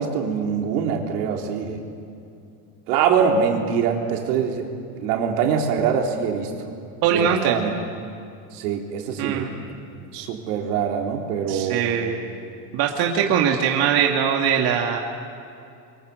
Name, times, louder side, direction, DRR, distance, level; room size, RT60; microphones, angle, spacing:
voice 1, 0.0-1.8 2.9-4.7 4.9-6.5 7.1-7.7 8.5-9.5 10.1-11.9, right 7 dB, 85° right, 1 dB, 3.9 m, -23 dB
voice 2, 7.0-7.6 9.2-9.5 11.5-12.2 12.7-15.0, right 8 dB, 55° right, 1 dB, 2.2 m, -21 dB
27.0 x 24.0 x 7.9 m, 2.5 s
cardioid pair, 145°, 46 cm